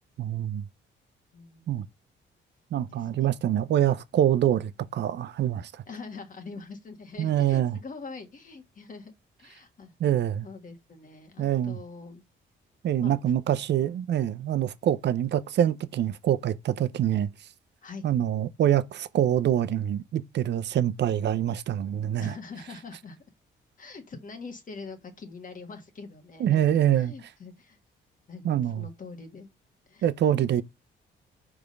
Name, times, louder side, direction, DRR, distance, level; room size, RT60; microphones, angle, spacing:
voice 1, 0.2-0.7 1.7-1.8 2.7-5.8 7.2-7.8 10.0-10.5 11.4-11.8 12.8-17.3 18.0-22.3 26.4-27.1 28.4-28.9 30.0-30.6, right 11 dB, 60° right, 0.7 m, -25 dB
voice 2, 1.3-1.9 2.9-3.3 5.9-9.1 9.4-9.9 10.4-12.2 13.0-13.1 17.8-18.0 22.2-23.2 23.8-26.6 26.9-27.8 28.3-29.5 29.9-30.1 30.5-30.6, left 4 dB, 40° left, 1.5 m, -43 dB
5.0 x 3.6 x 5.2 m
cardioid pair, 90°, 20 cm